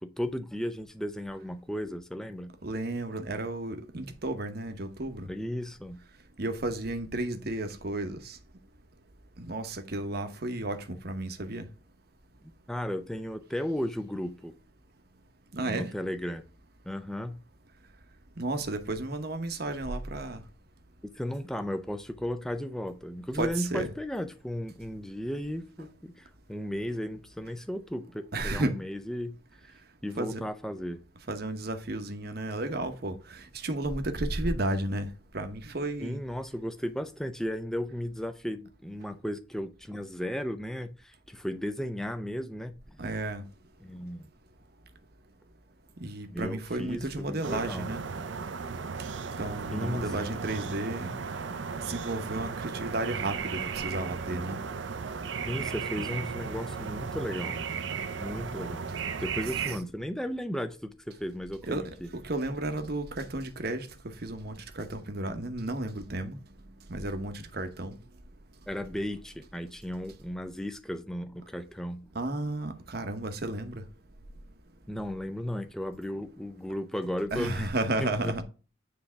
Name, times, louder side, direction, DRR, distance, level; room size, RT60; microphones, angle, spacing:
voice 1, 0.0-2.5 5.2-6.0 12.7-14.6 15.6-16.4 16.8-17.4 21.1-29.4 30.0-31.0 36.0-43.0 43.8-44.3 46.3-47.9 49.7-50.4 55.5-57.7 58.2-58.9 59.2-62.1 68.7-72.1 74.9-77.7 78.0-78.4, equal, ahead, 0.5 m, -35 dB
voice 2, 2.6-5.3 6.4-8.4 9.4-11.7 15.5-15.9 18.4-20.4 23.3-23.9 28.3-28.8 30.2-30.4 31.3-35.1 35.3-36.2 43.0-43.4 46.0-48.0 49.4-51.1 51.8-54.6 61.6-61.9 62.2-66.4 66.9-68.0 72.1-73.8 77.3-78.4, right 2 dB, 50° right, 0.9 m, -33 dB
sound 1, 47.4-59.8, right 5 dB, 65° right, 0.6 m, -35 dB
9.6 x 3.4 x 3.5 m
head